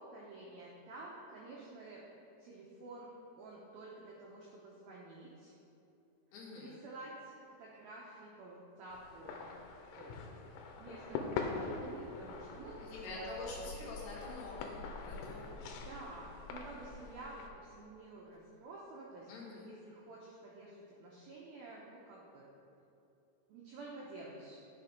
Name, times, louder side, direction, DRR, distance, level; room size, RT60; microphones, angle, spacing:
voice 1, 0.0-2.0 2.4-3.1 3.4-5.5 6.6-7.3 7.6-9.5 10.0-10.2 10.8-13.2 13.5-13.8 15.9-22.5 23.5-24.6, right 2 dB, 80° right, -4 dB, 2.1 m, -50 dB
voice 2, 6.3-6.8 12.8-15.5 19.3-19.7, left 2 dB, 65° left, -5 dB, 3.3 m, -45 dB
sound 1, 8.9-17.5, left 4 dB, 90° left, 3.1 m, -44 dB
10.0 x 6.3 x 5.1 m, 2.8 s
omnidirectional pair, 5.4 m